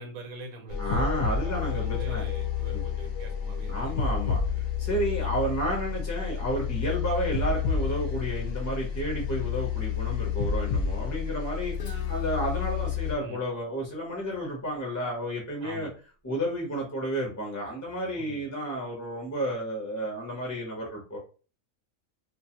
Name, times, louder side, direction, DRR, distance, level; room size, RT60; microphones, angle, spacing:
voice 1, 0.0-0.9 1.4-3.9 4.5-4.9 13.2-13.4 15.6-15.9 18.1-18.5, right 3 dB, 80° right, 3 dB, 1.1 m, -44 dB
sound 1, 0.7-13.1, left 7 dB, 65° left, 0.8 m, -30 dB
voice 2, 0.8-2.2 2.7-2.8 3.7-4.4 4.8-15.9 16.2-21.2, equal, 15° left, -1 dB, 0.6 m, -31 dB
Guitar, 11.7-15.5, left 3 dB, 90° left, 0.4 m, -49 dB
2.4 x 2.4 x 2.8 m, 0.36 s
omnidirectional pair, 1.4 m